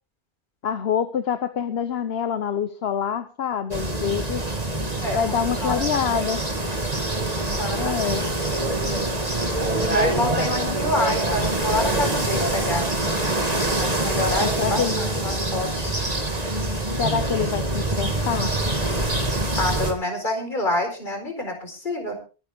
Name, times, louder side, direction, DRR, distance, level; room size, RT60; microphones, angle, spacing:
voice 1, 0.6-4.4 5.1-6.4 7.8-8.2 14.4-14.9 17.0-18.6, left 8 dB, 65° left, 11 dB, 1.1 m, -26 dB
sound 1, 3.7-19.9, right 2 dB, 35° right, 2.5 m, -25 dB
voice 2, 7.4-8.2 9.8-12.9 13.8-15.9 19.6-22.2, left 1 dB, 45° left, 3 dB, 4.7 m, -27 dB
23.0 x 9.6 x 3.5 m, 0.33 s
omnidirectional pair, 1.1 m